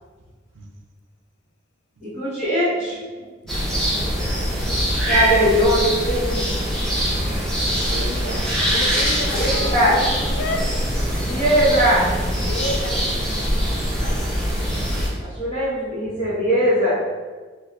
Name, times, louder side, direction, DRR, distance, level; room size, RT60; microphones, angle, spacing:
voice 1, 2.0-3.0 5.1-6.5 9.4-9.9 11.2-12.1 14.0-14.1 15.2-16.9, equal, 40° left, -9 dB, 1.2 m, -20 dB
voice 2, 2.8-3.3 7.9-8.7 16.1-16.3, right 1 dB, 90° right, 3 dB, 0.4 m, -37 dB
sound 1, 3.5-15.1, equal, 5° left, 0.6 m, -23 dB
voice 3, 3.9-4.5 8.6-10.9 11.4-11.6 12.4-13.0, left 2 dB, 75° left, 4 dB, 0.4 m, -31 dB
Piano, 9.5-13.1, equal, 35° right, 0.9 m, -40 dB
3.3 x 2.9 x 2.4 m, 1.4 s
head